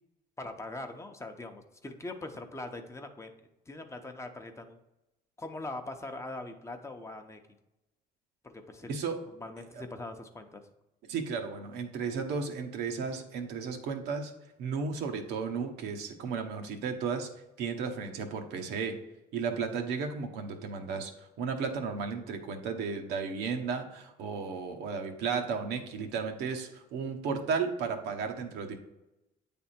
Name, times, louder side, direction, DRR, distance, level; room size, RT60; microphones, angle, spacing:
voice 1, 0.4-3.3 3.7-4.8 5.4-7.4 8.4-8.9 9.3-10.7, left 2 dB, 15° left, 5 dB, 0.7 m, -42 dB
voice 2, 8.9-9.2 9.7-9.8 11.1-14.3 14.6-17.3 17.6-19.0 19.3-28.8, right 5 dB, 80° right, 5 dB, 0.9 m, -34 dB
8.6 x 3.5 x 4.2 m, 0.94 s
cardioid pair, 110°, 17 cm